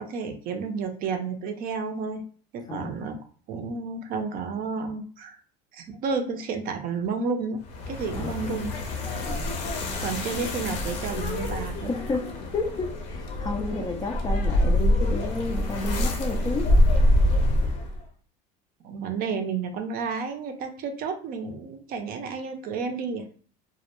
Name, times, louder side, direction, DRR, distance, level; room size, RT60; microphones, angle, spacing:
voice 1, 0.0-2.2 2.5-3.2 3.5-5.4 5.7-7.6 7.9-8.8 10.0-11.9 13.7-13.8 18.8-23.2, right 5 dB, 45° right, 6 dB, 0.5 m, -31 dB
voice 2, 2.7-3.0 8.1-8.3 9.3-9.5 11.8-16.8, left 3 dB, 20° left, 3 dB, 0.3 m, -31 dB
sound 1, 7.6-18.0, left 1 dB, 55° left, 0.7 m, -25 dB
2.1 x 2.1 x 2.9 m, 0.43 s
supercardioid pair, 105°, 21 cm